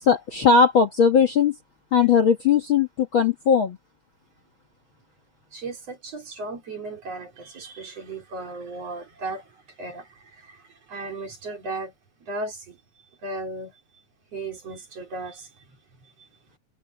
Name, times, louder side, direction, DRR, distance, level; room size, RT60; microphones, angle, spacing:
voice 1, 0.0-1.6 1.9-3.8, left 6 dB, 45° left, 1.9 m, -19 dB
voice 2, 5.5-10.6 10.9-11.9 12.3-12.8 13.2-13.7 14.3-15.5, right 2 dB, 50° right, 4.2 m, -35 dB
open air
omnidirectional pair, 3.8 m